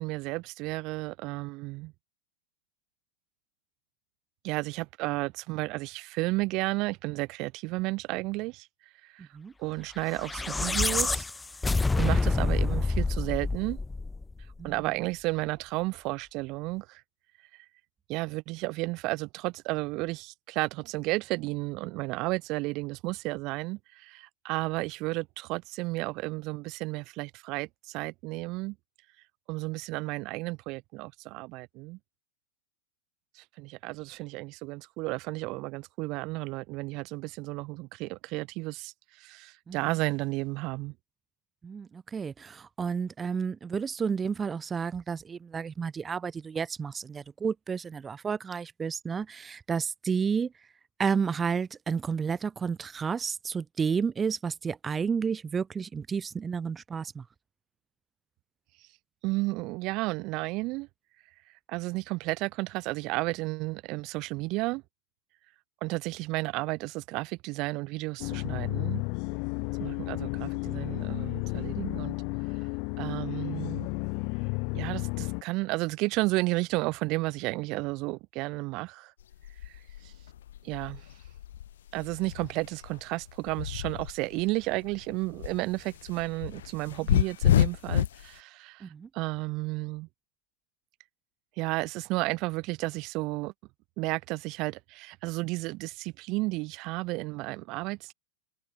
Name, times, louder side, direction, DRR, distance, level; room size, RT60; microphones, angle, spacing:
voice 1, 0.0-1.9 4.4-8.7 9.0-9.3 9.6-11.3 11.9-13.8 14.6-17.0 17.5-17.6 18.1-28.8 29.5-32.0 33.3-40.9 59.2-60.9 61.7-64.8 65.8-69.0 69.8-72.2 73.0-73.9 74.7-79.1 79.6-80.1 80.6-81.0 81.9-90.1 91.6-93.5 94.0-98.1, right 23 dB, 50° right, 1.1 m, -32 dB
voice 2, 9.2-9.5 14.6-14.8 39.7-39.8 41.6-50.5 51.0-57.2 88.8-89.1, right 6 dB, 20° right, 1.2 m, -31 dB
sound 1, 10.1-14.5, left 3 dB, 10° left, 1.6 m, -27 dB
sound 2, 68.2-75.4, left 36 dB, 55° left, 2.2 m, -32 dB
sound 3, 79.2-84.5 84.8-88.3, left 11 dB, 80° left, 1.6 m, -29 dB
hypercardioid pair, 115°, 0 cm